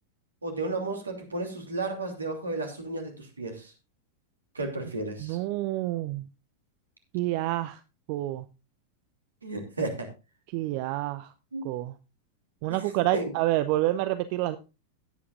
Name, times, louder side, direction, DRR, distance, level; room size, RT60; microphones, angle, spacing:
voice 1, 0.4-3.7 4.5-5.4 9.4-10.1 11.5-11.7 13.1-13.3, right 2 dB, 75° right, 2.8 m, -33 dB
voice 2, 5.2-6.3 7.1-7.8 8.1-8.4 10.5-11.3 11.6-11.9 12.6-14.6, right 16 dB, 45° right, 0.6 m, -28 dB
17.0 x 8.5 x 2.5 m
figure-of-eight pair, 90°, 0 cm